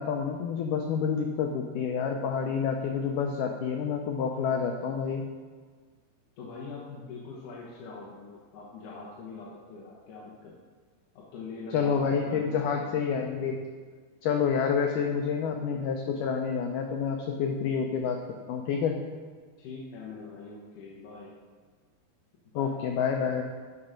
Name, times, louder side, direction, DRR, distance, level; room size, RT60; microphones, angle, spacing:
voice 1, 0.0-5.2 11.7-13.6 14.2-18.2 18.5-19.0 22.6-23.4, left 6 dB, 85° left, 3 dB, 1.8 m, -28 dB
voice 2, 6.4-10.6 11.1-13.1 19.6-21.4 22.5-22.7, left 4 dB, 65° left, -5 dB, 2.3 m, -43 dB
9.7 x 6.0 x 5.1 m, 1.6 s
omnidirectional pair, 4.5 m